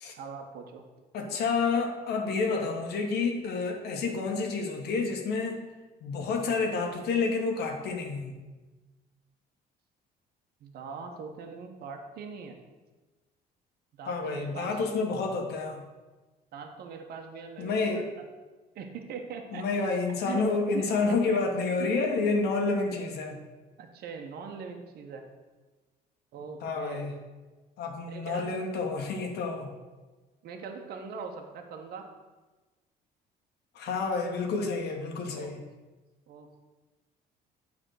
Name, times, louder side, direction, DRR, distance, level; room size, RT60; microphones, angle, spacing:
voice 1, 0.2-0.8 10.6-12.6 14.0-14.7 16.5-18.0 18.7-19.7 20.3-20.4 20.7-20.9 21.3-21.4 21.8-22.0 23.8-25.2 26.3-27.0 28.1-28.6 30.4-32.1 35.3-35.5 36.3-36.6, right 5 dB, 65° right, 3 dB, 1.0 m, -41 dB
voice 2, 1.1-5.6 6.0-8.3 14.0-15.8 17.6-18.1 19.5-23.4 26.6-27.1 27.8-29.7 33.7-35.6, left 4 dB, 70° left, 3 dB, 1.2 m, -29 dB
7.8 x 3.6 x 6.3 m, 1.2 s
cardioid pair, 110°, 17 cm